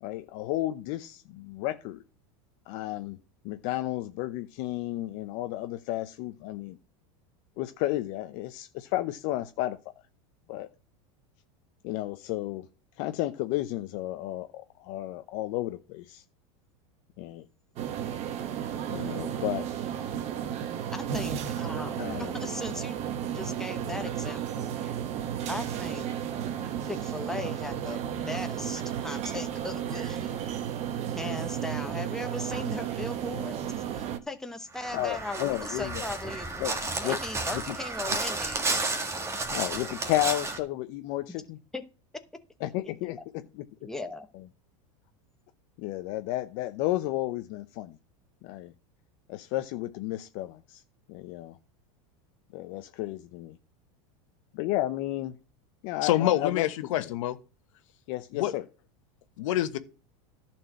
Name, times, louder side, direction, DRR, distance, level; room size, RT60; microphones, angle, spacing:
voice 1, 0.0-2.0 2.7-3.2 3.4-6.8 7.6-9.8 10.5-10.7 11.8-12.7 13.0-16.2 17.2-17.5 18.9-19.7 22.0-22.4 23.9-24.0 34.9-36.0 36.6-37.2 37.5-37.8 39.5-41.6 42.6-43.7 44.3-44.4 45.8-48.0 48.4-48.7 49.3-50.8 51.1-51.6 52.5-53.6 54.5-55.4 55.8-56.6 57.0-57.1 58.1-58.6, left 15 dB, 55° left, 0.7 m, -32 dB
sound 1, 17.8-34.2, right 9 dB, 40° right, 1.2 m, -33 dB
voice 2, 20.9-23.0 23.3-24.9 25.5-26.1 26.8-28.0 28.2-30.4 31.1-33.6 33.9-38.8 41.7-41.8 42.8-43.2 43.8-44.3, left 2 dB, 5° left, 1.0 m, -38 dB
Crow, 34.7-40.6, right 3 dB, 15° right, 1.8 m, -32 dB
voice 3, 56.0-57.4 58.3-58.5 59.4-59.8, left 13 dB, 75° left, 1.2 m, -26 dB
11.0 x 4.5 x 7.5 m
supercardioid pair, 130°, 16 cm